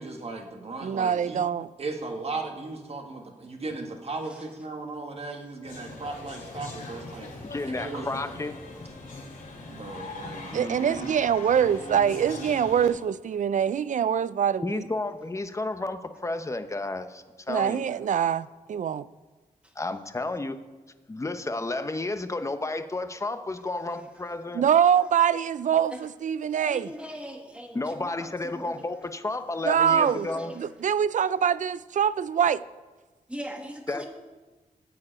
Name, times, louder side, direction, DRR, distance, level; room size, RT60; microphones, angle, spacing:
voice 1, 0.0-1.4 1.8-7.3 7.8-8.1 9.7-11.1, right 3 dB, 45° right, 3 dB, 1.3 m, -36 dB
voice 2, 0.8-1.7 10.5-14.8 17.5-19.1 24.5-26.9 29.6-30.3 30.6-32.6, right 8 dB, 60° right, 17 dB, 0.4 m, -24 dB
sound 1, 5.6-12.9, left 2 dB, 80° left, 3.4 m, -41 dB
voice 3, 7.5-8.5 14.6-17.8 19.8-20.6 21.1-24.6 27.7-30.5 33.9-34.1, left 2 dB, 20° left, 9 dB, 0.7 m, -32 dB
voice 4, 26.5-28.9 29.9-30.7 33.3-34.1, equal, 10° right, 3 dB, 1.6 m, -41 dB
14.0 x 4.7 x 8.7 m, 1.3 s
wide cardioid pair, 100°, 14 cm